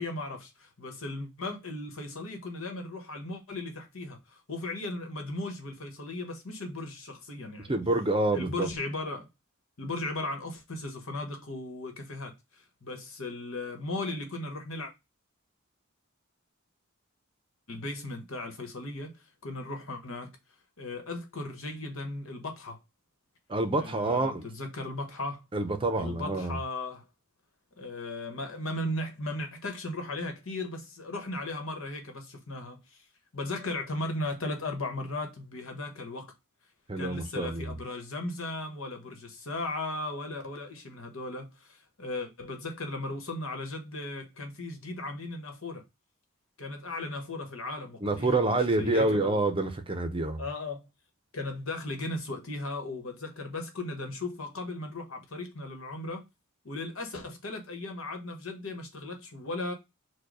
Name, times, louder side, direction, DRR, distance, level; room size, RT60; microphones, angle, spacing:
voice 1, 0.0-7.7 8.3-9.3 9.8-12.3 12.8-14.9 17.7-19.2 19.4-20.3 20.8-22.8 23.8-25.4 26.0-27.0 27.8-32.8 33.3-36.3 37.0-45.8 46.6-49.4 50.4-50.9 51.3-56.3 56.6-59.7, left 2 dB, 70° left, 1.3 m, -36 dB
voice 2, 7.7-8.7 23.5-24.5 25.5-26.6 36.9-37.8 48.0-50.4, right 2 dB, 25° right, 0.6 m, -27 dB
4.6 x 2.3 x 4.7 m
head